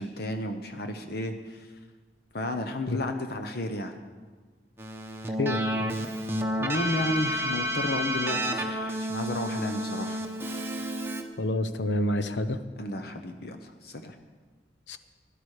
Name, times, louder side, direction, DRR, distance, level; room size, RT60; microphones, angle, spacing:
voice 1, 0.0-1.7 2.3-4.0 6.6-10.2 12.8-14.2, left 1 dB, 60° left, 6 dB, 0.9 m, -32 dB
Keyboard (musical), 4.8-11.2, equal, 15° right, 1.0 m, -30 dB
voice 2, 5.4-5.9 11.4-12.6 14.9-15.0, left 1 dB, 90° left, 10 dB, 0.9 m, -28 dB
17.0 x 11.5 x 4.9 m, 1.4 s
head